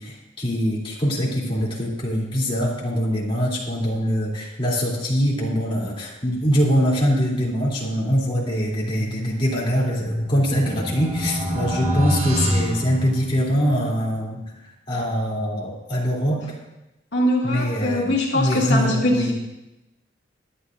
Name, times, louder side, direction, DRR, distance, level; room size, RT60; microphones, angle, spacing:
voice 1, 0.0-14.4 14.9-16.4 17.4-19.3, equal, 30° left, -5 dB, 2.9 m, -23 dB
sound 1, 10.1-13.7, equal, 35° right, 1.9 m, -26 dB
voice 2, 17.1-19.3, left 1 dB, 70° left, -3 dB, 2.3 m, -22 dB
23.5 x 9.9 x 2.6 m, 0.97 s
head